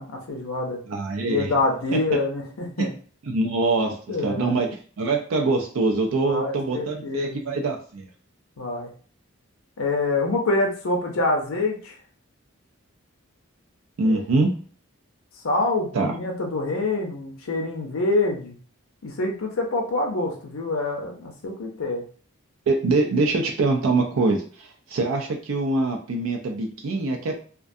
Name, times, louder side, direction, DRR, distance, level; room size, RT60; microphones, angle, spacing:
voice 1, 0.0-0.8 1.3-2.9 4.1-4.6 6.2-7.7 8.6-8.9 9.8-12.0 14.0-14.2 15.4-18.6 19.0-22.0, left 2 dB, 75° left, 2 dB, 0.6 m, -26 dB
voice 2, 0.9-1.5 1.9-2.0 2.8-2.9 3.3-4.7 5.0-8.1 14.0-14.5 15.9-16.1 22.7-27.3, right 3 dB, 75° right, 3 dB, 0.4 m, -24 dB
2.4 x 2.2 x 2.5 m, 0.42 s
head